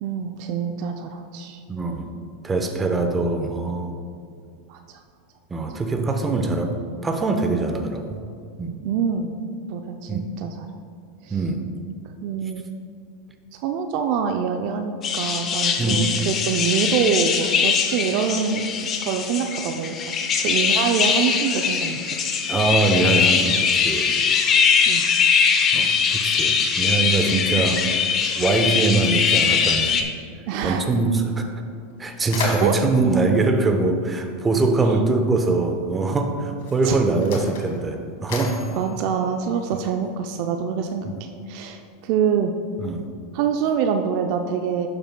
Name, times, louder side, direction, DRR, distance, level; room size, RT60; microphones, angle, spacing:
voice 1, 0.0-1.6 4.7-5.0 8.8-9.3 9.7-10.7 11.2-11.4 12.2-12.6 13.5-18.7 19.0-20.0 20.4-22.3 24.9-25.0 30.5-30.9 32.6-32.7 36.8-37.0 38.7-42.5 43.3-44.9, right 7 dB, 60° right, 5 dB, 0.4 m, -25 dB
voice 2, 1.7-2.1 2.4-3.9 5.5-8.2 8.6-8.8 10.1-10.2 11.3-11.7 15.8-16.1 22.5-24.1 25.7-27.9 28.3-30.0 30.6-31.5 32.0-38.7 42.8-43.0, right 3 dB, 20° right, 5 dB, 0.8 m, -23 dB
sound 1, 15.0-30.0, left 6 dB, 35° left, 0.8 m, -21 dB
Mechanisms, 31.3-31.4 31.8-34.5 35.5-35.7 36.5-40.1, left 3 dB, 70° left, 1.7 m, -34 dB
11.5 x 6.7 x 2.2 m, 2.3 s
hypercardioid pair, 105°, 0 cm